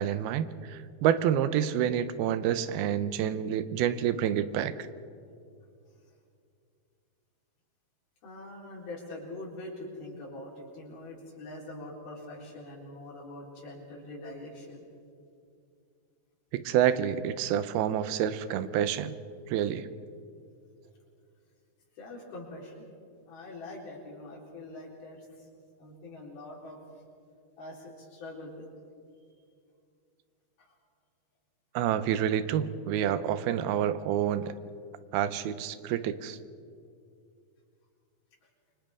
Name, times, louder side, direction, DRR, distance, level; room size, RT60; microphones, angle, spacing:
voice 1, 0.0-4.9 16.5-19.2 19.5-19.9 31.7-34.6 35.1-36.4, right 10 dB, 85° right, 13 dB, 2.7 m, -28 dB
voice 2, 8.2-14.8 22.0-22.8 23.3-25.2 25.8-26.8 27.6-28.7, left 2 dB, 75° left, -4 dB, 6.0 m, -43 dB
28.5 x 24.5 x 3.7 m, 2.4 s
omnidirectional pair, 4.4 m